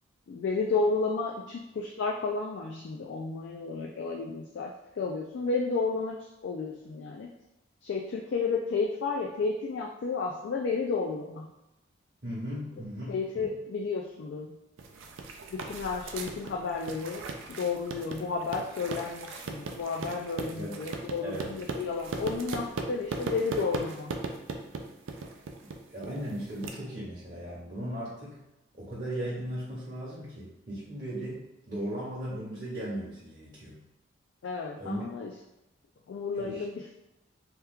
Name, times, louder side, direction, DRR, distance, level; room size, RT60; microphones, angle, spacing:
voice 1, 0.3-6.2 6.4-7.3 7.8-11.5 13.1-14.5 15.5-17.2 17.5-24.1 34.4-35.3 36.1-36.8, left 4 dB, 65° left, 0 dB, 0.3 m, -32 dB
voice 2, 12.2-13.5 20.5-20.7 21.2-21.5 25.9-28.4 28.7-33.8 34.8-35.1 36.3-36.6, right 1 dB, 45° right, -9 dB, 0.8 m, -37 dB
sound 1, 14.8-26.7, right 3 dB, 85° right, 0.4 m, -38 dB
2.9 x 2.3 x 3.5 m, 0.93 s
head